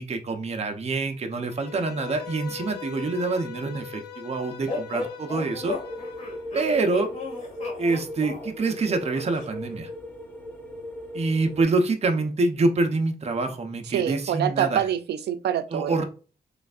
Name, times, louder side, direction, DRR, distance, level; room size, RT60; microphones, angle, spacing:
voice 1, 0.0-5.8 6.5-7.1 7.8-9.9 11.1-14.8 15.7-16.1, right 3 dB, 40° right, 0.7 m, -26 dB
Bowed string instrument, 1.5-6.5, left 9 dB, 90° left, 0.5 m, -41 dB
sound 1, 4.7-9.5, left 3 dB, 45° left, 1.8 m, -35 dB
sound 2, 5.6-11.6, left 1 dB, 10° left, 1.0 m, -38 dB
voice 2, 13.9-16.1, right 9 dB, 85° right, 0.4 m, -26 dB
4.0 x 3.3 x 2.4 m
cardioid pair, 95°, 17 cm